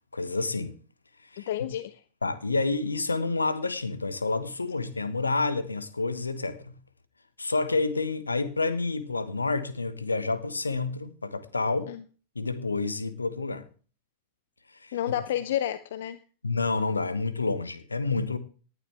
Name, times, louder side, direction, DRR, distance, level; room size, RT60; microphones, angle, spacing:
voice 1, 0.1-0.8 1.3-1.5 2.2-6.7 7.4-11.9 12.3-13.6 14.8-14.9 16.4-18.4, left 3 dB, 80° left, 1.2 m, -29 dB
voice 2, 1.4-2.0 11.9-12.0 14.9-16.2, left 11 dB, 60° left, 0.7 m, -30 dB
18.5 x 11.0 x 3.4 m
figure-of-eight pair, 90°, 0 cm